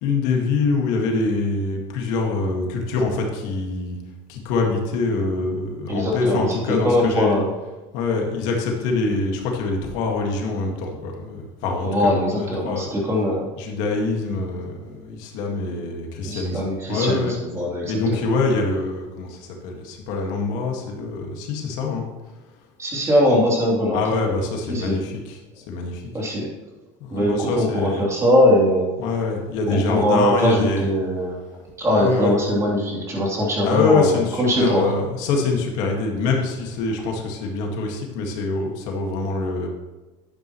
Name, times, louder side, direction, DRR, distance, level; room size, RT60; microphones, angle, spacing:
voice 1, 0.0-4.0 4.3-7.4 7.9-12.9 13.6-16.6 16.9-17.3 17.9-22.0 23.9-25.4 25.7-26.0 27.0-28.0 29.0-30.9 31.9-32.3 33.6-39.7, left 3 dB, 70° left, 1 dB, 1.9 m, -24 dB
voice 2, 5.9-7.5 11.8-13.5 16.2-18.3 22.8-24.0 24.7-25.0 26.1-26.5 27.1-28.9 29.7-31.4 31.8-34.9, left 1 dB, 20° right, -4 dB, 3.2 m, -21 dB
11.0 x 9.4 x 3.1 m, 1.2 s
cardioid pair, 140°, 13 cm